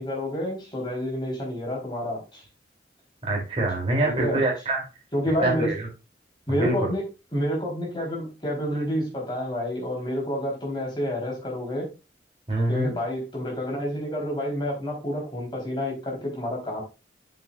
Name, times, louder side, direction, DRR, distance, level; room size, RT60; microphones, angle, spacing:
voice 1, 0.0-2.4 4.0-4.4 5.1-5.7 6.5-7.0 7.3-11.9 12.7-16.8, equal, 25° left, -2 dB, 3.9 m, -29 dB
voice 2, 3.2-4.8 5.4-5.9 6.5-6.9 12.5-12.9, right 2 dB, 30° right, -1 dB, 3.1 m, -25 dB
8.9 x 7.1 x 2.5 m, 0.28 s
head